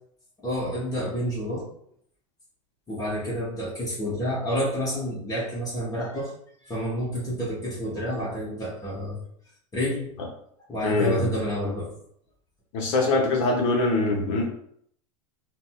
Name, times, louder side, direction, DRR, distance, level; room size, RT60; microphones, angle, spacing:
voice 1, 0.4-1.7 2.9-6.3 6.6-9.2 9.7-10.1 10.7-11.9, equal, 20° left, -5 dB, 1.1 m, -29 dB
voice 2, 10.8-11.2 12.7-14.5, left 2 dB, 60° left, 0 dB, 0.8 m, -23 dB
4.1 x 2.2 x 2.3 m, 0.66 s
hypercardioid pair, 100°, 19 cm